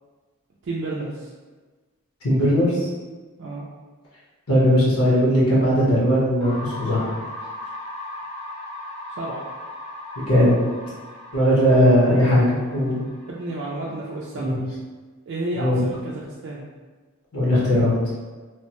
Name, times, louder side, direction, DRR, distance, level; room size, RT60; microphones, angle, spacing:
voice 1, 0.6-1.3 3.4-3.7 9.2-9.4 13.3-14.6 15.3-16.6, right 2 dB, 55° right, -5 dB, 0.4 m, -31 dB
voice 2, 2.2-2.7 4.5-7.1 10.3-10.6 11.3-13.0 14.4-14.6 15.6-15.8 17.3-17.9, equal, 75° left, -7 dB, 1.1 m, -18 dB
sound 1, 6.4-14.3, left 1 dB, 30° left, 0.8 m, -38 dB
3.0 x 2.2 x 2.9 m, 1.4 s
head